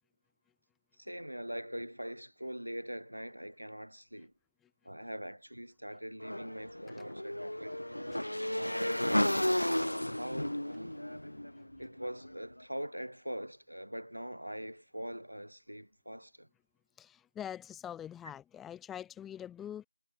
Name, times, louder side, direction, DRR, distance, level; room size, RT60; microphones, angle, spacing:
voice 1, 1.0-4.3 4.8-7.9 8.5-9.7 10.1-11.0 11.8-16.5, equal, 85° right, 5.8 m, -43 dB
Motorcycle / Engine, 6.2-12.3, left 1 dB, 80° left, 0.4 m, -33 dB
voice 2, 17.0-19.9, left 10 dB, 5° left, 1.0 m, -44 dB
figure-of-eight pair, 170°, 0 cm